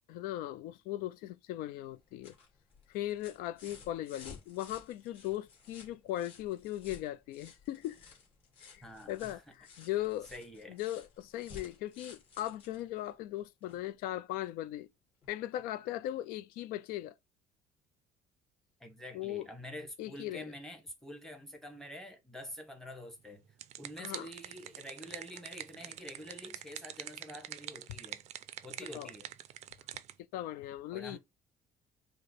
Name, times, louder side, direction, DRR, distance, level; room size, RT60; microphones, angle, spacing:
voice 1, 0.1-2.3 2.9-8.0 8.6-10.3 10.7-14.9 15.3-17.1 19.1-19.5 20.0-20.4 24.0-24.3 28.9-29.1 29.9-30.0 30.3-31.2, left 14 dB, 85° left, 0.4 m, -38 dB
Plastic slinky, 1.9-13.9 15.2-15.3, left 5 dB, 45° left, 2.2 m, -55 dB
voice 2, 8.8-9.4 10.3-10.8 18.8-23.4 23.8-28.2 28.6-29.3 30.9-31.2, left 1 dB, 5° left, 1.0 m, -47 dB
sound 1, 23.3-30.1, right 12 dB, 50° right, 0.4 m, -46 dB
5.0 x 2.1 x 4.1 m
cardioid pair, 150°, 15 cm